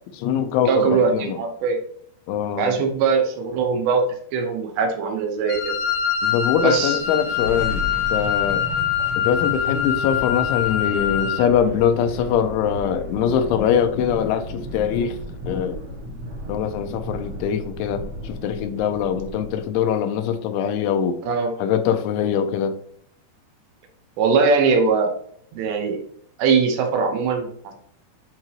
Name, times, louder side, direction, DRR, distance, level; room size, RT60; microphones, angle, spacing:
voice 1, 0.1-1.4 2.3-2.8 6.2-8.7 9.2-15.2 15.5-15.8 16.5-21.2 21.6-22.8, left 8 dB, 85° left, 3.0 m, -23 dB
voice 2, 0.7-1.8 2.6-4.0 4.3-5.7 6.6-7.0 21.3-21.5 24.2-25.1 25.5-26.0 26.4-27.7, right 5 dB, 75° right, 3.0 m, -21 dB
Wind instrument woodwind instrument, 5.5-11.5, left 9 dB, 65° left, 2.3 m, -24 dB
sound 1, 6.7-19.8, equal, 50° right, 1.7 m, -34 dB
11.0 x 3.8 x 2.9 m
omnidirectional pair, 5.4 m